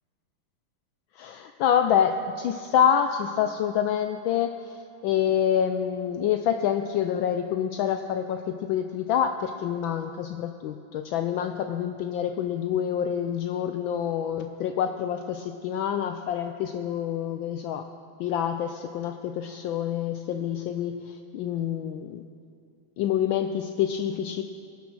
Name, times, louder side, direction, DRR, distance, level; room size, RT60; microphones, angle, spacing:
voice 1, 1.2-4.5 5.0-17.8 18.2-22.2 23.0-24.4, left 9 dB, 75° left, 7 dB, 1.2 m, -27 dB
21.5 x 7.2 x 6.1 m, 2.4 s
omnidirectional pair, 2.4 m